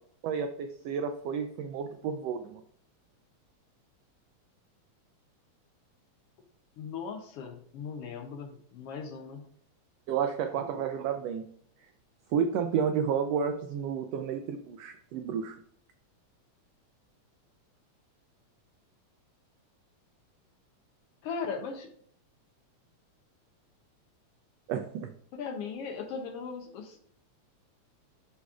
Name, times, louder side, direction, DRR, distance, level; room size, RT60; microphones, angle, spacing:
voice 1, 0.2-2.6 10.1-11.5 12.3-15.6 24.7-25.1, right 7 dB, 85° right, 7 dB, 1.4 m, -31 dB
voice 2, 6.8-9.5 10.5-10.8 21.2-21.9 25.3-27.0, left 5 dB, 75° left, 4 dB, 1.4 m, -38 dB
11.5 x 4.1 x 2.4 m, 0.63 s
omnidirectional pair, 3.3 m